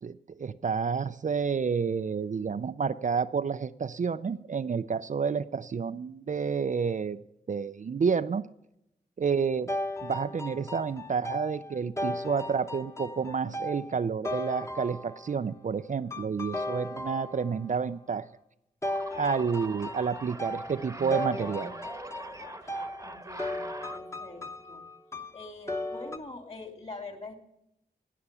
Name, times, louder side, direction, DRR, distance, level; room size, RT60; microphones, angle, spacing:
voice 1, 0.0-7.2 7.5-8.4 9.2-9.7 10.0-18.3 19.1-21.7, right 6 dB, 45° right, 12 dB, 0.4 m, -30 dB
sound 1, 9.7-15.4 16.1-17.7 18.8-26.2, left 1 dB, 15° left, 1.1 m, -36 dB
sound 2, 18.8-24.0, right 2 dB, 15° right, 1.1 m, -43 dB
voice 2, 23.0-24.4 24.7-24.9 25.3-27.3, left 3 dB, 35° left, 5 dB, 2.8 m, -44 dB
17.5 x 5.9 x 6.8 m, 0.81 s
cardioid pair, 55°, 18 cm